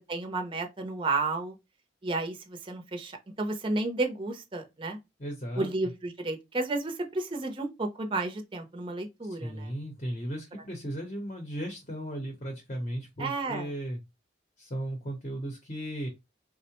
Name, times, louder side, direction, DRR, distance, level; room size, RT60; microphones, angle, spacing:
voice 1, 0.1-1.5 2.0-3.1 3.4-5.0 5.6-9.7 13.2-13.7, right 2 dB, 25° right, 0.5 m, -32 dB
voice 2, 5.2-5.7 9.2-14.0 14.6-16.1, right 1 dB, 35° left, 0.7 m, -36 dB
3.5 x 2.1 x 2.8 m
head